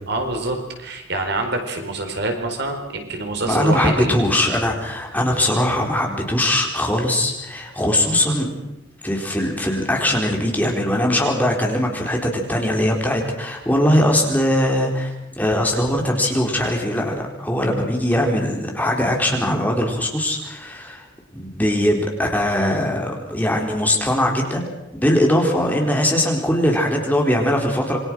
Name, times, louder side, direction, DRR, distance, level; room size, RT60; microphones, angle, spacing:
voice 1, 0.1-4.2, right 2 dB, 60° right, 4 dB, 4.5 m, -25 dB
voice 2, 3.5-8.5 9.0-15.1 15.4-21.0 21.3-28.0, left 1 dB, 10° left, 1 dB, 4.2 m, -21 dB
27.5 x 23.0 x 6.3 m, 0.90 s
head